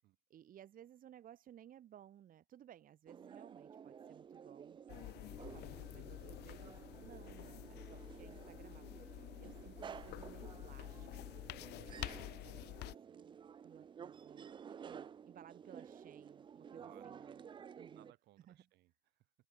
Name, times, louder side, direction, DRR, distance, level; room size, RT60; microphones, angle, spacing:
voice 1, 0.3-12.0 12.4-12.7 13.1-13.4 13.6-17.4 17.8-18.1 18.5-18.6, right 10 dB, 55° right, 2.2 m, -60 dB
sound 1, 3.1-18.1, right 7 dB, 30° right, 0.4 m, -53 dB
sound 2, 4.9-12.9, left 18 dB, 80° left, 0.9 m, -49 dB
voice 2, 11.9-12.6 16.7-17.4 17.9-19.3, right 17 dB, 80° right, 5.1 m, -67 dB
cardioid pair, 110°, 17 cm